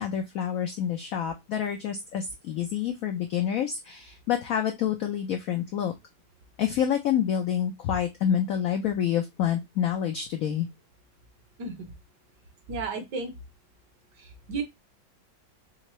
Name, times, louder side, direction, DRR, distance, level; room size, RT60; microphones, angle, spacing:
voice 1, 0.0-5.9 6.6-10.7, left 9 dB, 90° left, 5 dB, 0.7 m, -28 dB
voice 2, 11.6-11.9 12.7-13.3 14.2-14.6, right 4 dB, 65° right, 6 dB, 1.4 m, -33 dB
3.7 x 3.3 x 3.0 m, 0.20 s
omnidirectional pair, 2.1 m